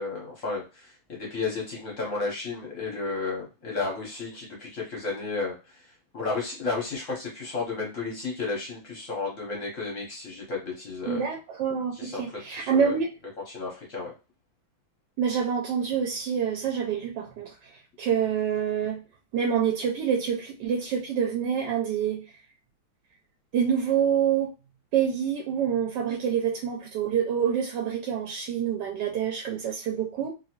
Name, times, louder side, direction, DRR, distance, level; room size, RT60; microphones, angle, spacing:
voice 1, 0.0-5.9 6.1-11.3 11.9-12.2 12.5-12.9 13.5-14.1, left 3 dB, 55° left, -2 dB, 1.0 m, -33 dB
voice 2, 11.1-13.1 15.2-17.7 18.0-19.0 19.3-22.2 23.5-24.5 24.9-30.3, right 8 dB, 75° right, 1 dB, 1.1 m, -27 dB
2.9 x 2.6 x 2.8 m, 0.30 s
omnidirectional pair, 2.2 m